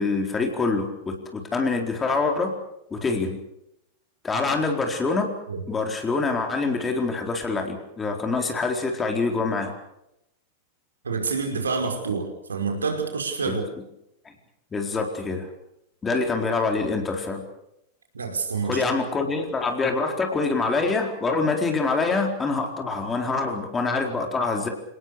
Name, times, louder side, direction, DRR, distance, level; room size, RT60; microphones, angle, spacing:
voice 1, 0.0-2.5 2.9-3.4 4.2-5.3 5.7-9.7 13.4-13.6 14.2-14.3 14.7-15.5 16.0-17.4 18.6-24.7, left 3 dB, 15° left, 3 dB, 4.3 m, -25 dB
voice 2, 11.0-13.6 18.1-18.8, right 4 dB, 70° right, 4 dB, 5.4 m, -27 dB
29.0 x 19.0 x 6.8 m, 0.82 s
figure-of-eight pair, 90°, 0 cm